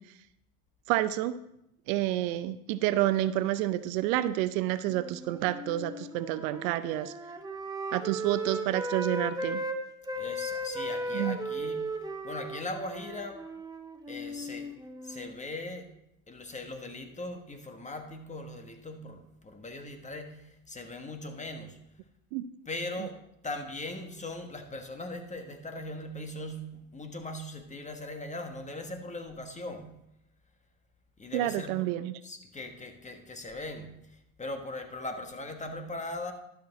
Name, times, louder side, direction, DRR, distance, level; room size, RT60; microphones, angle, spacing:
voice 1, 0.9-1.4 1.9-7.1 7.9-9.6 11.1-11.4 22.3-22.4 31.3-32.1, right 14 dB, 70° right, 14 dB, 0.6 m, -29 dB
Wind instrument woodwind instrument, 4.9-9.8 10.0-15.4, right 1 dB, 10° right, 1.0 m, -36 dB
voice 2, 10.2-11.9 12.2-13.4 14.1-14.7 15.0-15.9 16.3-21.8 22.6-23.2 23.4-29.9 31.2-31.8 32.2-36.3, left 2 dB, 15° left, 5 dB, 1.4 m, -39 dB
12.0 x 6.1 x 4.1 m, 0.80 s
hypercardioid pair, 80°, 43 cm